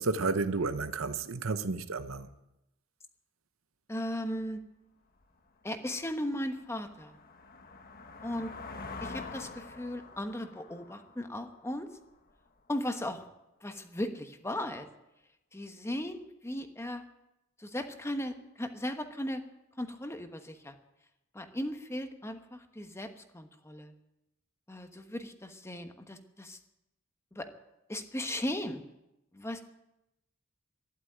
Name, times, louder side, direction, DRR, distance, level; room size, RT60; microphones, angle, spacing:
voice 1, 0.0-2.3, right 3 dB, 75° right, 0.9 m, -31 dB
voice 2, 3.9-4.6 5.6-7.1 8.2-8.5 9.0-11.9 12.7-13.2 13.6-14.9 15.5-17.1 17.6-19.4 19.8-20.8 21.3-23.9 24.7-26.6 27.3-27.5 27.9-28.8 29.3-29.6, left 1 dB, 15° left, 1.2 m, -37 dB
sound 1, 5.2-5.3 5.8-12.4, left 3 dB, 45° left, 1.3 m, -46 dB
12.5 x 11.5 x 9.0 m
head